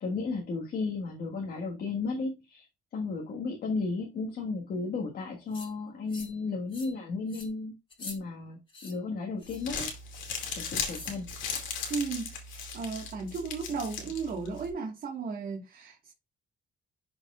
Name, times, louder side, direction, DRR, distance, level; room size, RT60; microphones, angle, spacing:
voice 1, 0.0-2.7 2.9-7.7 8.0-9.9 10.5-11.3, left 4 dB, 55° left, 1.5 m, -34 dB
sound 1, 5.5-5.7 6.1-6.4 6.7-7.0 7.3-7.5 7.9-8.2 8.7-9.0 9.4-9.7 10.8-11.2, left 3 dB, 25° left, 2.1 m, -45 dB
Crumpling crinkling, 9.4-14.7, left 5 dB, 85° left, 2.3 m, -37 dB
voice 2, 11.9-16.1, right 4 dB, 50° right, 1.6 m, -35 dB
12.0 x 4.7 x 2.4 m
cardioid pair, 125°, 19 cm